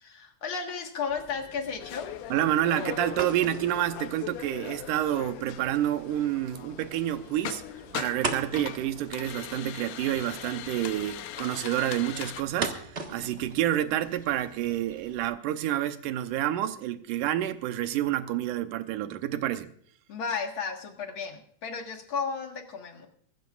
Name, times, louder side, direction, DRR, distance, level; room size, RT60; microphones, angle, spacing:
voice 1, 0.0-2.1 20.1-23.1, left 5 dB, 50° left, 2.0 m, -34 dB
sound 1, 1.1-15.2, right 3 dB, 45° right, 0.7 m, -41 dB
sound 2, 1.8-12.4, left 12 dB, 75° left, 1.7 m, -40 dB
voice 2, 2.3-7.6 7.9-19.7, right 12 dB, 85° right, 2.3 m, -29 dB
24.0 x 13.5 x 2.4 m
omnidirectional pair, 3.6 m